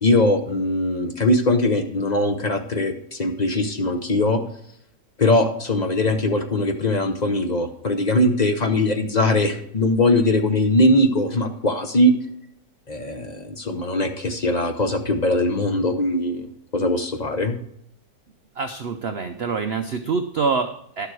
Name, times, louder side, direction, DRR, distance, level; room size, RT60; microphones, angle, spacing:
voice 1, 0.0-4.4 5.2-12.1 12.9-17.6, left 1 dB, 40° left, 5 dB, 0.6 m, -21 dB
voice 2, 18.6-21.1, right 5 dB, 75° right, 7 dB, 0.5 m, -25 dB
11.5 x 6.9 x 4.7 m, 0.70 s
omnidirectional pair, 1.8 m